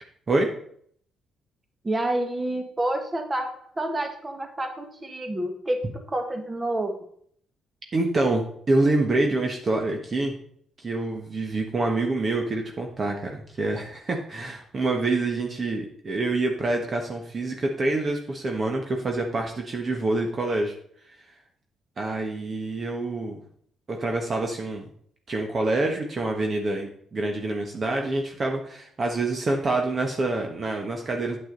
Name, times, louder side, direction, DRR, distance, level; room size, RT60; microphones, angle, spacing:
voice 1, 1.8-3.5 3.8-5.8 6.1-7.1, right 1 dB, 20° right, 5 dB, 1.6 m, -28 dB
voice 2, 7.9-10.3 10.8-20.7 22.0-23.4 23.9-24.9 25.3-31.4, right 2 dB, 40° right, 2 dB, 1.3 m, -26 dB
8.7 x 7.9 x 3.9 m, 0.62 s
cardioid pair, 90°, 0 cm